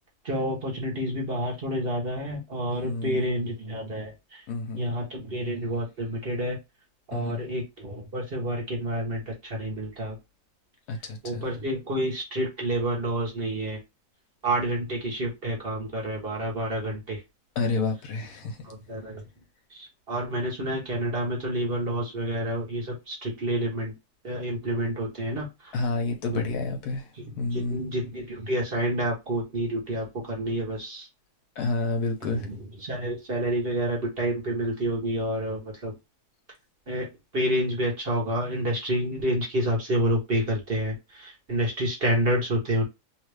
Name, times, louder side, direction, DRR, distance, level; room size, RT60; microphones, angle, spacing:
voice 1, 0.2-4.4 4.8-6.6 7.1-10.2 11.2-13.8 14.4-17.2 18.6-19.2 19.7-23.9 24.2-25.7 26.3-26.6 27.1-31.1 32.2-35.9 36.9-42.8, right 1 dB, 40° right, 1.1 m, -29 dB
voice 2, 2.8-3.3 4.5-4.9 7.1-7.4 10.9-11.4 17.6-18.6 25.7-27.1 27.4-27.8 31.6-32.5, left 3 dB, 75° left, 1.3 m, -29 dB
3.1 x 2.4 x 3.2 m
omnidirectional pair, 1.7 m